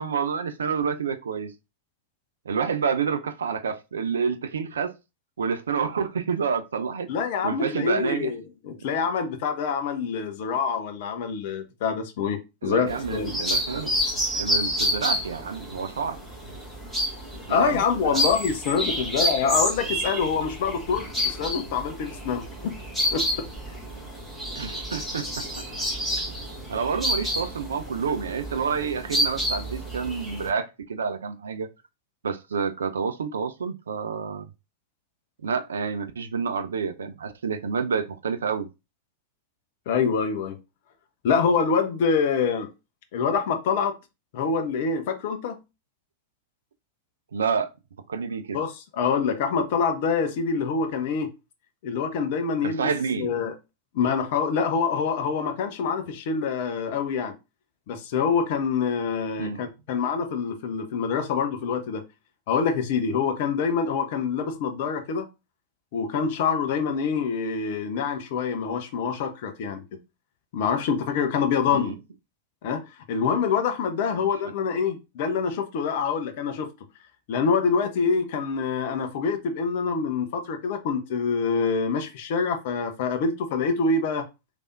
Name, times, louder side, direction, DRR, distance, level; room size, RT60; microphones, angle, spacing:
voice 1, 0.0-1.5 2.5-4.9 5.4-7.1 7.4-8.3 12.6-14.0 14.3-16.2 17.5-18.2 24.6-25.4 26.7-31.7 32.2-34.5 35.4-38.7 47.3-47.7 48.1-48.6 52.6-53.4 59.4-59.6 71.7-72.0 74.1-74.2, right 6 dB, 70° right, 0.4 m, -28 dB
voice 2, 7.1-13.3 17.5-22.7 23.1-23.5 39.9-40.6 41.2-42.7 43.1-43.9 44.3-45.6 48.5-51.3 51.8-52.8 53.2-53.5 53.9-57.3 57.9-62.0 62.5-65.3 65.9-69.8 70.5-72.0 72.6-76.7 77.3-84.3, left 5 dB, 50° left, 0.6 m, -26 dB
sound 1, 12.9-30.5, equal, 5° left, 1.5 m, -29 dB
3.3 x 3.3 x 2.5 m
figure-of-eight pair, 90°, 0 cm